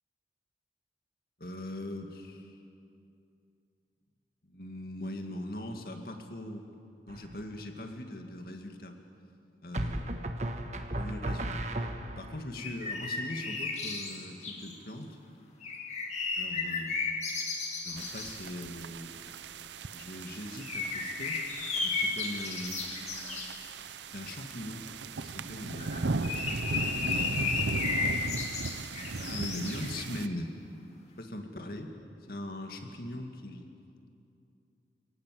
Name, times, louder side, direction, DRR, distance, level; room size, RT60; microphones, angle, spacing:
voice 1, 1.4-2.6 4.4-6.7 7.1-9.0 9.6-10.2 11.0-11.7 12.2-15.2 16.4-17.0 17.8-19.4 19.9-21.4 21.8-22.9 24.1-24.9 25.2-26.3 27.1-27.5 28.7-30.5 31.2-31.9 32.3-33.7, left 1 dB, 55° left, 4 dB, 2.3 m, -40 dB
sound 1, 7.1-7.6 9.7-12.4, right 1 dB, 40° right, 1.4 m, -35 dB
sound 2, 12.6-14.8 15.6-18.4 20.6-23.6 25.8-30.3, left 4 dB, 35° left, 2.6 m, -34 dB
sound 3, 18.0-30.3, right 3 dB, 80° right, 0.7 m, -37 dB
28.5 x 18.5 x 7.8 m, 2.6 s
head